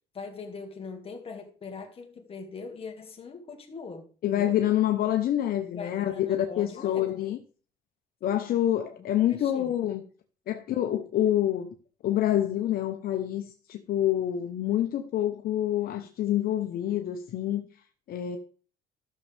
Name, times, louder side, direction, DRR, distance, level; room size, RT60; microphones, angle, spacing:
voice 1, 0.1-4.5 5.8-7.1 9.3-9.7, left 4 dB, 35° left, 2.1 m, -41 dB
voice 2, 4.2-7.4 8.2-10.0 10.5-11.7 12.0-13.4 13.7-17.7 18.1-18.4, left 12 dB, 60° left, 0.9 m, -27 dB
13.5 x 6.6 x 3.5 m
cardioid pair, 110°, 17 cm